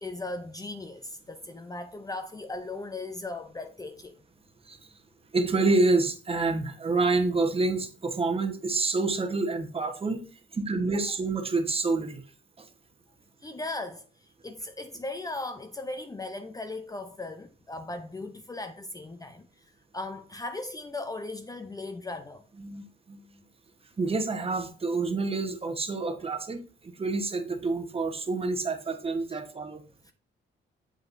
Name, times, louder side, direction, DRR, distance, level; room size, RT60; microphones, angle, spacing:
voice 1, 0.0-4.2 13.4-14.1 14.4-19.5 19.9-22.4 29.3-29.4 30.1-30.2, left 2 dB, 20° left, 0.6 m, -37 dB
voice 2, 5.3-10.3 10.5-12.2 12.6-12.7 22.6-23.2 24.0-26.6 27.0-29.8, right 3 dB, 30° right, 1.1 m, -28 dB
7.3 x 5.7 x 2.6 m
cardioid pair, 90°, 20 cm